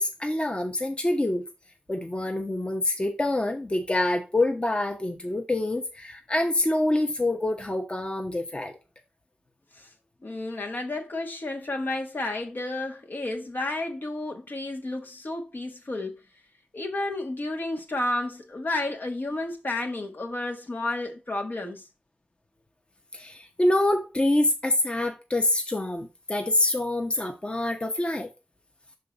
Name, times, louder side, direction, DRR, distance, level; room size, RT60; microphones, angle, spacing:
voice 1, 0.0-1.5 1.9-8.7 23.1-28.3, left 1 dB, 30° left, 0.9 m, -26 dB
voice 2, 10.2-16.2 16.7-21.8, left 2 dB, 65° left, 1.5 m, -31 dB
5.7 x 3.9 x 5.1 m
wide cardioid pair, 55°, 4 cm